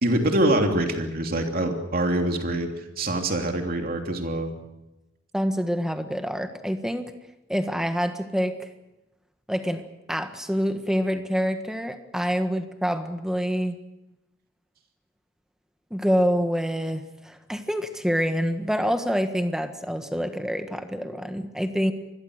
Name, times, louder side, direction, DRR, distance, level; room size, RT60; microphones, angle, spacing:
voice 1, 0.0-2.7 3.0-4.5, right 1 dB, 50° right, 3 dB, 3.1 m, -24 dB
voice 2, 5.3-7.0 7.5-8.7 9.5-13.8 15.9-21.9, equal, 5° right, 7 dB, 1.6 m, -26 dB
27.0 x 21.5 x 6.6 m, 0.97 s
head